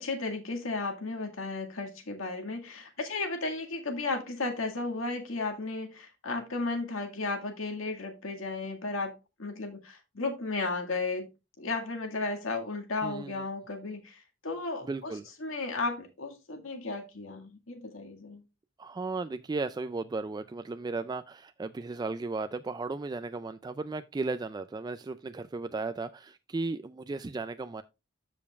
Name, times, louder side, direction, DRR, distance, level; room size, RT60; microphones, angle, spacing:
voice 1, 0.0-9.1 9.4-11.3 11.6-15.1 15.4-18.4, left 3 dB, 90° left, 1.9 m, -34 dB
voice 2, 13.0-13.4 14.8-15.3 18.8-27.8, right 3 dB, 20° right, 0.3 m, -35 dB
13.5 x 5.2 x 2.4 m
head